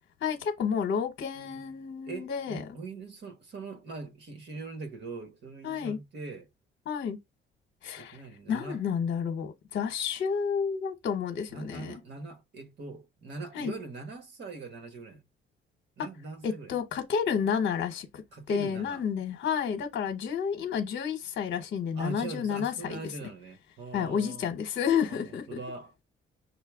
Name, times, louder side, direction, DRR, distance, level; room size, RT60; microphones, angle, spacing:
voice 1, 0.2-2.6 5.6-6.0 6.9-7.2 7.8-8.2 8.5-11.9 13.5-13.7 16.4-18.2 18.5-23.0 23.9-25.6, left 7 dB, 65° left, 1.0 m, -30 dB
voice 2, 1.3-6.5 8.0-8.8 11.5-15.2 16.0-16.8 18.3-19.0 21.9-24.5 25.1-26.0, right 3 dB, 60° right, 1.4 m, -42 dB
6.3 x 2.2 x 3.5 m
cardioid pair, 90°, 20 cm